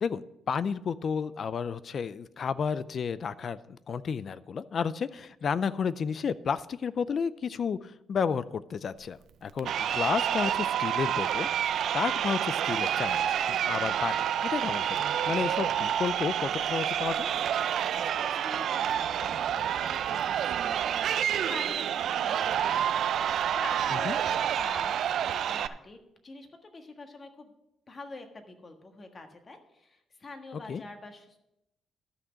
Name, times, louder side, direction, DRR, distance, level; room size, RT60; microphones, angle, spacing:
voice 1, 0.0-11.7 11.9-14.2 14.4-17.3 24.0-24.2 30.7-30.8, left 6 dB, 50° left, 17 dB, 0.4 m, -32 dB
Crowd, 9.6-25.7, right 9 dB, 70° right, 0.4 m, -28 dB
voice 2, 17.8-27.5 27.9-31.4, left 2 dB, 35° left, 5 dB, 1.5 m, -46 dB
13.0 x 6.1 x 5.2 m, 0.88 s
cardioid pair, 90°, 0 cm